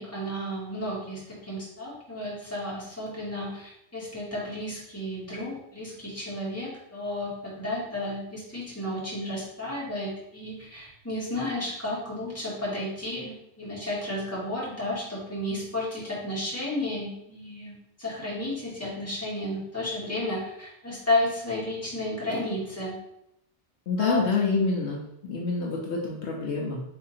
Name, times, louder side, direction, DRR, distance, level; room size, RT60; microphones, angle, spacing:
voice 1, 0.0-17.7 18.0-22.9 24.0-24.3, left 1 dB, 15° left, -8 dB, 1.6 m, -32 dB
voice 2, 23.9-26.8, left 4 dB, 70° left, -2 dB, 1.0 m, -27 dB
3.6 x 2.8 x 4.1 m, 0.79 s
omnidirectional pair, 1.2 m